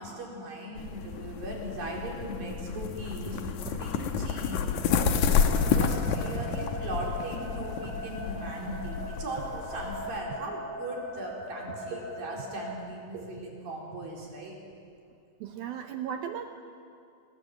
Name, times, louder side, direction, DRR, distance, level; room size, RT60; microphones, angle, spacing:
voice 1, 0.0-4.6 5.7-14.6, right 1 dB, 50° right, -2 dB, 5.7 m, -38 dB
sound 1, 0.8-10.2, left 6 dB, 80° left, 1.7 m, -30 dB
sound 2, 4.9-12.7, left 1 dB, 50° left, 5.2 m, -41 dB
voice 2, 15.4-16.4, right 9 dB, 75° right, 5 dB, 2.3 m, -36 dB
29.5 x 20.5 x 7.7 m, 2.3 s
omnidirectional pair, 5.3 m